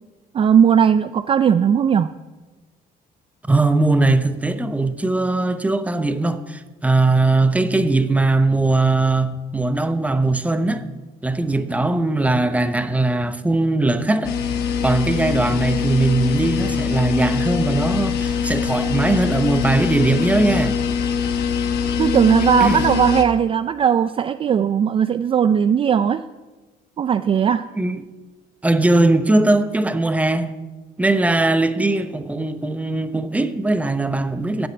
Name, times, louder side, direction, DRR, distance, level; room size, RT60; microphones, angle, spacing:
voice 1, 0.3-2.1 22.0-26.2 27.0-27.7, right 8 dB, 35° right, 0.4 m, -17 dB
voice 2, 3.5-10.8 11.2-14.3 14.8-20.8 22.6-22.8 27.8-28.0 28.6-30.5 31.0-34.7, right 2 dB, 10° right, 0.8 m, -20 dB
sound 1, 14.2-23.2, left 7 dB, 75° left, 1.2 m, -23 dB
9.8 x 8.0 x 8.0 m
cardioid pair, 110°, 17 cm